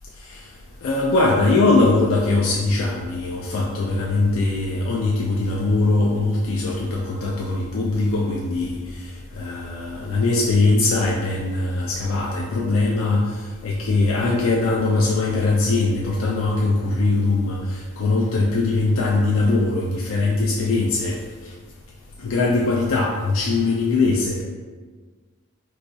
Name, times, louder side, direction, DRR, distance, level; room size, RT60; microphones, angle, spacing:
voice 1, 0.8-9.0 9.3-13.3 13.6-21.2 22.2-24.4, left 3 dB, 70° left, -3 dB, 0.4 m, -21 dB
3.9 x 2.3 x 2.7 m, 1.5 s
head